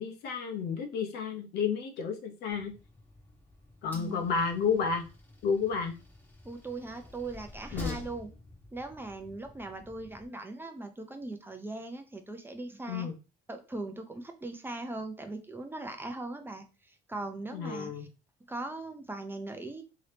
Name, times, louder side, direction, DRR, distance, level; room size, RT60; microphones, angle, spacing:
voice 1, 0.0-2.7 3.8-5.1 5.4-5.9 7.7-8.0 12.9-13.1 17.5-18.1, left 6 dB, 75° left, 4 dB, 0.7 m, -31 dB
Train, 2.5-10.3, left 2 dB, 10° left, 0.8 m, -48 dB
voice 2, 3.9-4.2 6.4-8.3 8.7-13.1 13.5-18.1 18.5-19.8, right 2 dB, 10° right, 6 dB, 0.5 m, -40 dB
2.8 x 2.8 x 3.3 m, 0.32 s
cardioid pair, 110°, 17 cm